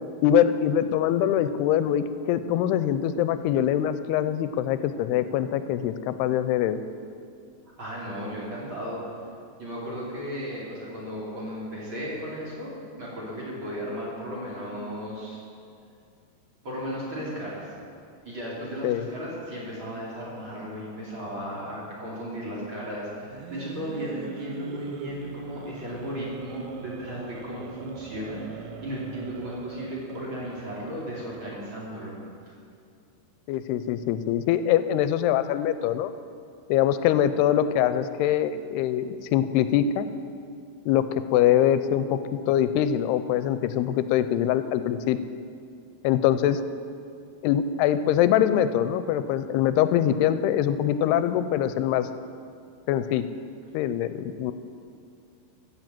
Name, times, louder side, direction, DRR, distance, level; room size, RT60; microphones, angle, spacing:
voice 1, 0.2-6.8 18.8-19.1 33.5-36.1 36.7-40.1 40.9-45.2 46.0-46.6 47.4-52.1 52.9-53.3 53.7-54.5, left 10 dB, 90° left, 12 dB, 2.6 m, -23 dB
voice 2, 7.8-9.0 9.6-12.7 13.0-15.4 16.6-17.7 18.2-32.1 32.5-32.6, equal, 35° right, -6 dB, 3.3 m, -35 dB
sound 1, 23.2-32.0, right 8 dB, 80° right, 2.0 m, -43 dB
15.0 x 7.5 x 7.7 m, 2.4 s
omnidirectional pair, 4.6 m